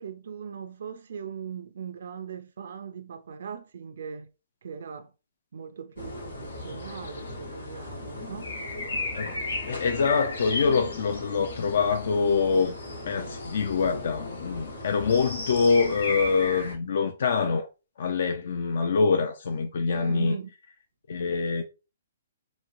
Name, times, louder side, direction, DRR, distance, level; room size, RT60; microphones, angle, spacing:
voice 1, 0.0-4.3 4.6-5.1 5.5-8.6 19.9-20.5, right 7 dB, 70° right, 0.3 m, -39 dB
sound 1, 6.0-16.7, left 2 dB, 85° left, 1.2 m, -35 dB
voice 2, 9.7-12.7 13.0-17.7 18.0-20.4 21.1-21.6, left 5 dB, 65° left, 0.4 m, -25 dB
3.0 x 2.9 x 2.5 m
hypercardioid pair, 140°, 0 cm